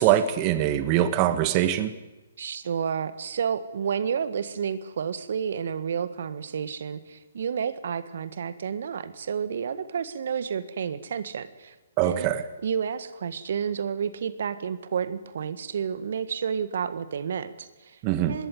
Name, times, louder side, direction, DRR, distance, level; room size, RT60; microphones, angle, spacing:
voice 1, 0.0-1.9 12.0-12.4 18.0-18.4, right 12 dB, 35° right, 12 dB, 1.3 m, -23 dB
voice 2, 2.4-12.3 12.6-18.0 18.3-18.5, right 7 dB, 65° right, 14 dB, 1.6 m, -30 dB
20.5 x 17.0 x 9.4 m, 1.1 s
hypercardioid pair, 135°, 0 cm